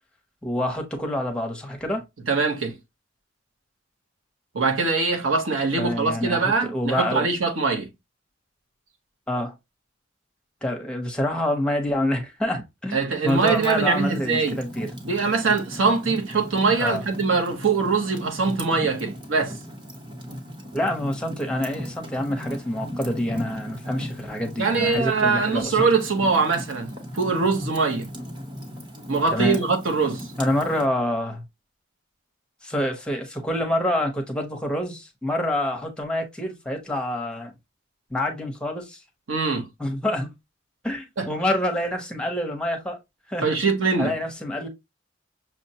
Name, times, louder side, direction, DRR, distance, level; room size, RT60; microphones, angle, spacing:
voice 1, 0.4-2.0 5.8-7.3 9.3-9.5 10.6-14.9 16.8-17.0 20.7-25.8 29.3-29.6 30.4-31.4 32.6-37.5 38.1-39.0 39.8-40.3 40.8-43.0 43.3-43.5 44.0-44.7, left 1 dB, 5° left, 0.7 m, -27 dB
voice 2, 2.3-2.7 4.5-7.9 12.9-14.6 15.0-19.6 24.6-28.1 29.1-30.3 39.3-39.7 41.2-41.3 43.4-44.1, right 4 dB, 85° right, 0.9 m, -23 dB
Fire, 13.3-30.9, equal, 25° right, 0.9 m, -37 dB
6.0 x 2.1 x 2.7 m
head